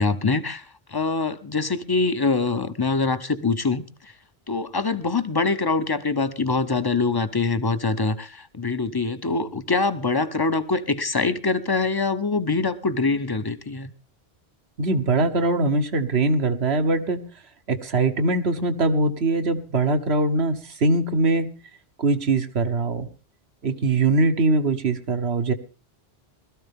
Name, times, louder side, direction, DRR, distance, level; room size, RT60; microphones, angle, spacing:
voice 1, 0.0-4.1 4.5-13.9, left 3 dB, 25° left, 0.7 m, -24 dB
voice 2, 14.8-17.2 17.7-21.5 22.0-23.1 23.6-25.5, right 3 dB, 80° right, 1.4 m, -22 dB
20.0 x 13.5 x 3.6 m
omnidirectional pair, 1.1 m